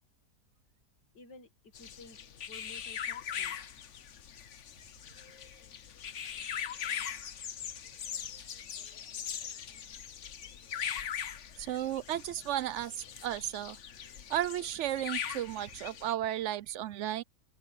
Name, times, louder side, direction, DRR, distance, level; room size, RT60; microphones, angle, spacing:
voice 1, 1.1-2.2 2.5-3.6, left 3 dB, 85° left, 2.6 m, -53 dB
sound 1, 1.7-16.1, left 8 dB, 50° left, 1.1 m, -41 dB
voice 2, 11.6-12.9 13.2-13.8 14.3-17.2, right 12 dB, 75° right, 0.6 m, -34 dB
omnidirectional pair, 1.8 m